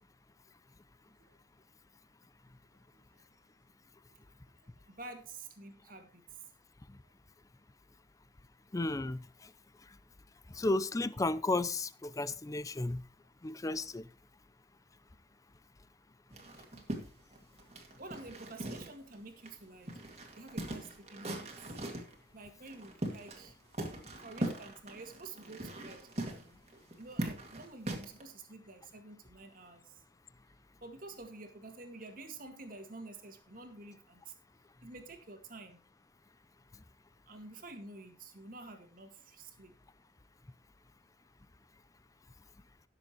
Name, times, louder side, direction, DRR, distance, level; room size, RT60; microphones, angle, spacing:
voice 1, 4.9-6.2 18.0-19.9 20.4-21.5 22.3-23.5 24.2-26.6 27.0-29.9 30.8-34.3 34.8-35.8 37.3-39.7, right 3 dB, 55° right, 1.9 m, -49 dB
voice 2, 8.7-9.2 10.5-13.0 13.4-14.1, left 2 dB, 20° left, 0.5 m, -33 dB
sound 1, 16.3-19.2 19.4-19.5 19.9-22.1 22.7-23.5 23.7-28.2, right 1 dB, 40° right, 2.1 m, -40 dB
17.5 x 6.9 x 3.0 m
head